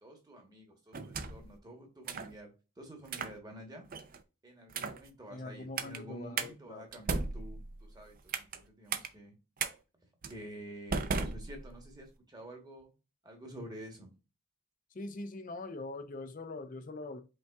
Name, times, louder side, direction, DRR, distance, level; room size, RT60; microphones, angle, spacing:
voice 1, 0.0-3.8 4.4-9.3 10.2-12.9 13.2-14.1, right 1 dB, 20° right, 1.1 m, -49 dB
Open close lock unlock door, 0.9-1.5 2.1-2.3 3.1-3.4 3.9-4.2 4.7-5.1 5.8-6.0 6.4-6.5 6.9-8.6 8.9-9.1 9.6-9.7 10.2-10.4 10.9-12.0, right 4 dB, 40° right, 0.4 m, -36 dB
voice 2, 5.3-6.8 14.9-17.2, left 2 dB, 35° left, 0.5 m, -43 dB
5.3 x 3.6 x 2.3 m
head